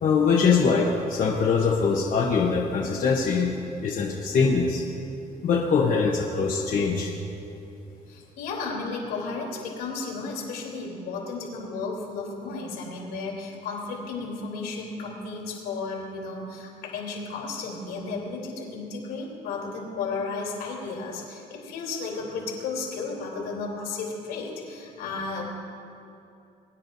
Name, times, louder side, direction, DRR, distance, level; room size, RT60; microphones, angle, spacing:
voice 1, 0.0-3.5 3.8-4.8 5.4-7.1, left 5 dB, 50° left, -2 dB, 1.2 m, -22 dB
voice 2, 8.1-25.4, left 4 dB, 85° left, -3 dB, 3.3 m, -33 dB
22.5 x 10.0 x 2.7 m, 2.7 s
cardioid pair, 110°, 17 cm